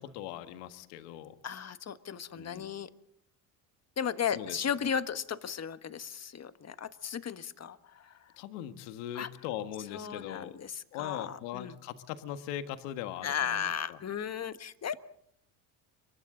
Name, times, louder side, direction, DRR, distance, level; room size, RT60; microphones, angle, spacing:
voice 1, 0.0-1.4 2.3-2.7 4.3-4.6 8.4-10.5 10.9-14.0, left 11 dB, 80° left, 9 dB, 1.7 m, -40 dB
voice 2, 1.4-2.9 4.0-8.3 9.1-9.3 9.9-11.8 13.2-15.0, left 8 dB, 35° left, 11 dB, 1.4 m, -35 dB
29.5 x 24.0 x 3.9 m, 0.68 s
supercardioid pair, 85°, 46 cm